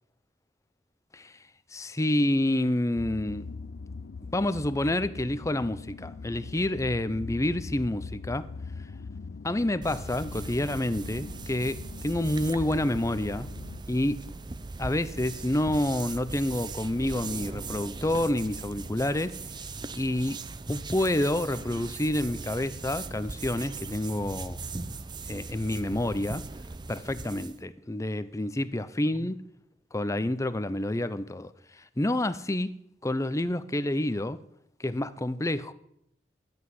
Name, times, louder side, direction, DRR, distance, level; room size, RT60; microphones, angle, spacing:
voice 1, 1.7-3.5 4.3-8.5 9.4-11.8 12.0-13.5 13.9-14.2 14.8-19.4 20.0-20.4 20.7-24.6 25.3-26.5 26.9-29.4 29.9-31.5 32.0-32.8 33.0-34.4 34.8-35.7, left 1 dB, 20° left, 0.7 m, -28 dB
sound 1, 2.9-13.8, left 4 dB, 80° left, 0.5 m, -41 dB
sound 2, 9.8-27.6, right 3 dB, 25° right, 0.7 m, -39 dB
12.0 x 8.5 x 9.4 m
head